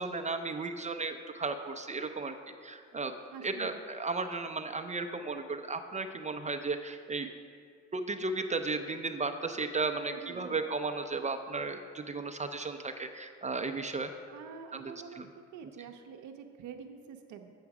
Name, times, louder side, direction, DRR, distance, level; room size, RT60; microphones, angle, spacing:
voice 1, 0.0-2.3 2.6-3.1 3.4-7.3 7.9-14.1 14.7-15.3, right 3 dB, 25° right, 6 dB, 0.4 m, -35 dB
voice 2, 3.3-3.8 10.1-10.6 14.3-15.3 15.5-17.5, right 7 dB, 75° right, 4 dB, 0.6 m, -47 dB
7.8 x 7.2 x 4.7 m, 2.2 s
cardioid pair, 90°, 30 cm